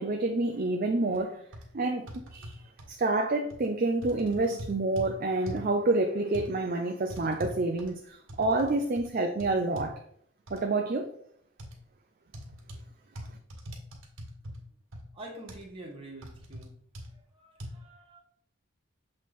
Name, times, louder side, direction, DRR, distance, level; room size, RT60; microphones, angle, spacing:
voice 1, 0.0-1.4 1.7-2.5 2.9-10.0 10.5-11.1, right 2 dB, 40° right, 0.4 m, -28 dB
sound 1, 1.1-1.2 1.5-1.6 2.1-2.9 3.5-3.7 4.0-5.1 5.5-5.7 6.3-6.5 7.1-8.7 9.0-9.1 9.4-9.9 10.5-10.6 11.6-11.8 12.3-12.8 13.2-14.6 14.9-15.0 15.5-15.6 16.2-16.7 16.9-17.1 17.6-17.7, equal, 75° right, 1.6 m, -41 dB
voice 2, 15.1-16.7 17.1-18.2, right 1 dB, 25° right, 1.6 m, -46 dB
7.2 x 3.1 x 4.1 m
head